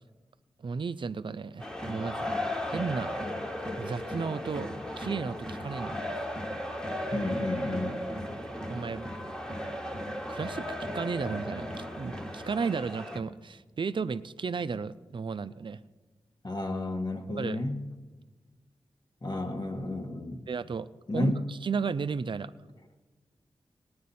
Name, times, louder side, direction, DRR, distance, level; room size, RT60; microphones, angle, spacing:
voice 1, 0.6-2.3 2.6-3.1 3.8-6.0 8.7-9.1 10.1-15.8 17.4-17.6 20.5-20.9 21.1-22.5, right 5 dB, 55° right, 14 dB, 0.5 m, -34 dB
sound 1, 1.6-13.2, equal, 5° left, 1.3 m, -35 dB
voice 2, 7.1-8.0 16.4-17.8 19.2-20.4 21.1-21.4, left 2 dB, 45° left, 4 dB, 1.4 m, -32 dB
18.0 x 9.5 x 4.2 m, 1.3 s
cardioid pair, 45°, 10 cm